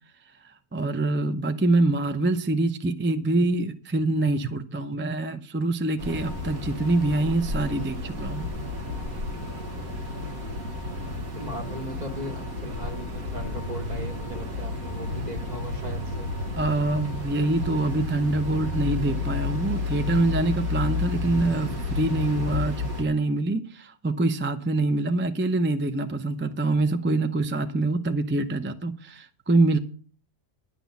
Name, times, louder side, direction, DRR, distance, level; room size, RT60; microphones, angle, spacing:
voice 1, 0.7-8.5 16.6-29.8, right 2 dB, 15° right, 0.4 m, -25 dB
sound 1, 6.0-23.0, left 3 dB, 80° right, 2.5 m, -31 dB
voice 2, 11.3-16.4, equal, 30° right, 1.8 m, -38 dB
11.0 x 6.1 x 8.4 m
omnidirectional pair, 1.5 m